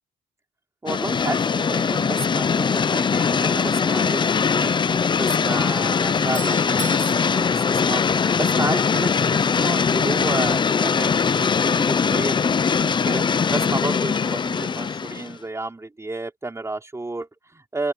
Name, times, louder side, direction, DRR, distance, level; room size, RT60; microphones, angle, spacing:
voice 1, 0.8-4.2 4.5-4.8 5.1-8.0 8.4-13.2 13.5-17.9, right 2 dB, 15° right, 5.2 m, -31 dB
sound 1, 0.9-15.3, left 6 dB, 25° left, 0.5 m, -21 dB
Doorbell, 5.9-8.8, right 8 dB, 50° right, 4.2 m, -39 dB
open air
cardioid pair, 120°, 17 cm